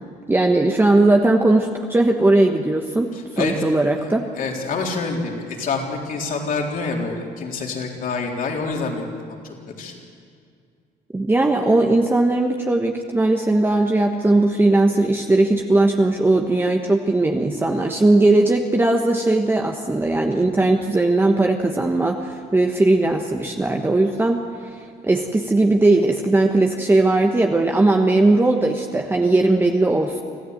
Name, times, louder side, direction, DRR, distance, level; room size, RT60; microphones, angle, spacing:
voice 1, 0.3-4.3 11.1-30.2, right 2 dB, 15° right, 2 dB, 1.2 m, -18 dB
voice 2, 3.1-3.5 4.0-4.1 4.3-9.1 9.4-10.0, left 4 dB, 55° left, 0 dB, 3.8 m, -27 dB
25.5 x 15.0 x 8.0 m, 2.2 s
cardioid pair, 110°, 17 cm